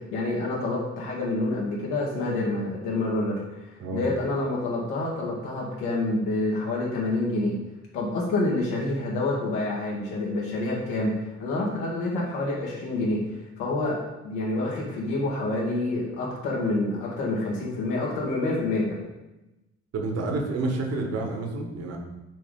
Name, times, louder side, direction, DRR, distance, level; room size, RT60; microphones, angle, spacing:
voice 1, 0.1-7.6 7.9-14.0 14.2-19.1, left 2 dB, 65° left, -3 dB, 2.4 m, -27 dB
voice 2, 19.9-22.0, right 3 dB, 45° right, 2 dB, 1.7 m, -29 dB
8.9 x 4.9 x 3.9 m, 1.0 s
figure-of-eight pair, 45°, 34 cm